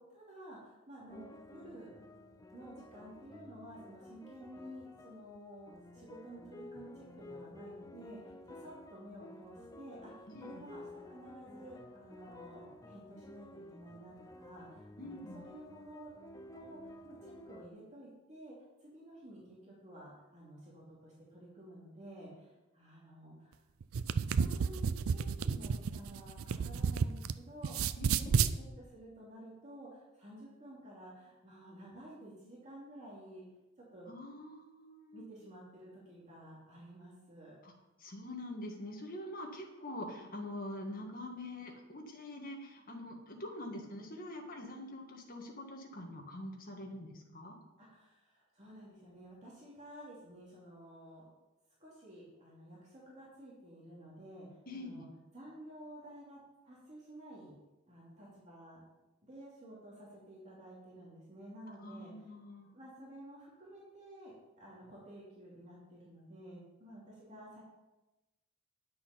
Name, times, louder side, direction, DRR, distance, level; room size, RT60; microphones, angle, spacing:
voice 1, 0.0-1.9 2.5-16.1 16.5-18.5 18.8-23.6 24.3-33.4 33.9-34.1 35.1-37.6 47.8-51.2 51.8-55.1 55.3-57.5 57.9-58.8 59.2-62.1 62.7-67.6, right 1 dB, 35° right, -6 dB, 2.6 m, -52 dB
sound 1, 1.1-17.7, left 1 dB, 15° left, 0.5 m, -53 dB
voice 2, 10.3-10.6 15.0-15.5 28.0-28.4 34.1-35.2 37.6-37.7 38.0-47.6 54.7-55.1 61.8-62.8, left 1 dB, 45° left, 1 dB, 1.7 m, -45 dB
sound 2, 23.8-27.3 27.6-28.5, right 6 dB, 85° right, 0.4 m, -31 dB
10.0 x 6.7 x 5.7 m, 1.0 s
head